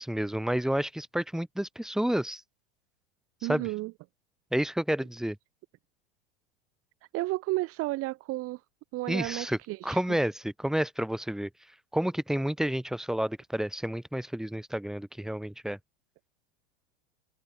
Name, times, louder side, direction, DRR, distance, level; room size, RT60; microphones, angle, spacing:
voice 1, 0.0-2.4 3.5-3.7 4.5-5.4 9.1-9.6 9.8-11.5 11.9-15.8, right 1 dB, ahead, 3.0 m, -30 dB
voice 2, 3.4-3.9 7.1-8.6 8.9-10.2, right 20 dB, 50° right, 1.8 m, -32 dB
hypercardioid pair, 105°, 30 cm